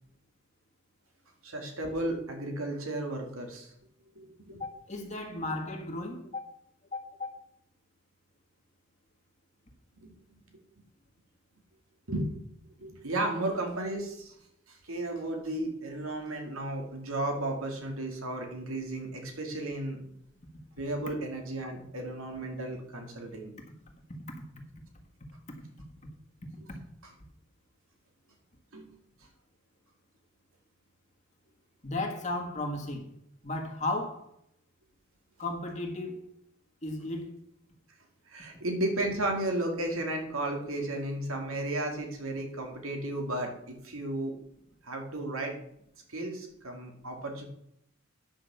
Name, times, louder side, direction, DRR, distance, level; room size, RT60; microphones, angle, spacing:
voice 1, 1.4-3.7 4.2-4.6 5.3-5.5 10.0-10.1 12.1-12.3 12.8-14.3 14.7-20.0 20.8-23.5 28.7-28.9 38.3-44.4 44.8-45.6 46.1-47.4, right 1 dB, 85° right, 2.4 m, -34 dB
voice 2, 4.6-6.5 6.9-7.3 26.7-26.8 31.8-33.1 33.4-34.3 35.4-36.2 36.8-37.3, left 2 dB, 35° left, 1.6 m, -34 dB
9.9 x 5.9 x 6.8 m
head